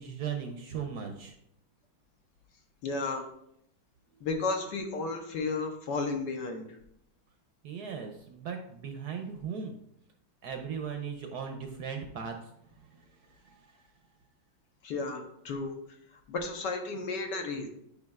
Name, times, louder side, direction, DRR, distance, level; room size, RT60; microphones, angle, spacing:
voice 1, 0.0-1.3 4.1-4.3 7.6-9.8 10.4-12.5 12.8-13.8, right 6 dB, 70° right, 5 dB, 1.0 m, -38 dB
voice 2, 2.8-3.2 4.2-6.6 14.8-15.7 16.3-17.7, left 3 dB, 70° left, 4 dB, 1.4 m, -33 dB
9.4 x 5.1 x 2.3 m, 0.76 s
omnidirectional pair, 2.2 m